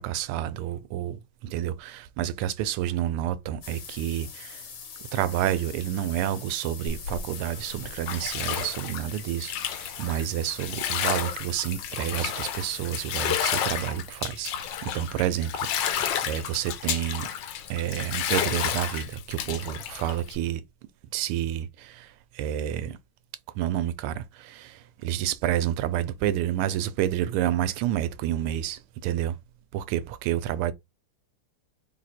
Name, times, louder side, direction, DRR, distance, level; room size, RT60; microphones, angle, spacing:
voice 1, 0.0-4.6 5.1-17.3 17.7-20.6 21.1-23.0 23.5-29.4 29.7-30.7, right 11 dB, 90° right, 1.5 m, -29 dB
sound 1, 3.6-13.7, left 6 dB, 50° left, 1.0 m, -43 dB
Bathtub (filling or washing), 6.9-20.3, left 9 dB, 70° left, 1.2 m, -31 dB
3.8 x 2.8 x 4.1 m
omnidirectional pair, 2.4 m